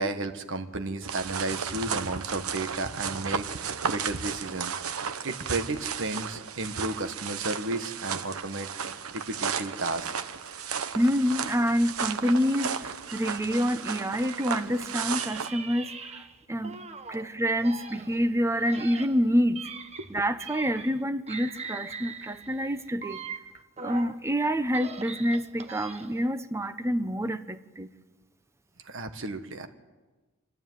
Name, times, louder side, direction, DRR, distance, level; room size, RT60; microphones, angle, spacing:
voice 1, 0.0-4.7 5.2-8.7 9.1-10.1 20.0-20.1 28.8-29.7, right 2 dB, 60° right, 8 dB, 1.6 m, -33 dB
sound 1, 1.0-15.5, right 6 dB, 80° right, 1.0 m, -34 dB
voice 2, 11.0-12.7 13.1-15.9 16.5-16.7 17.1-19.6 20.1-23.2 23.8-27.4 27.8-27.9, equal, 15° right, 10 dB, 0.8 m, -27 dB
sound 2, 12.6-14.7 15.1-17.3 17.6-21.0 21.3-24.2 24.6-26.3, right 5 dB, 30° right, 1.1 m, -42 dB
26.5 x 12.0 x 9.3 m, 1.3 s
head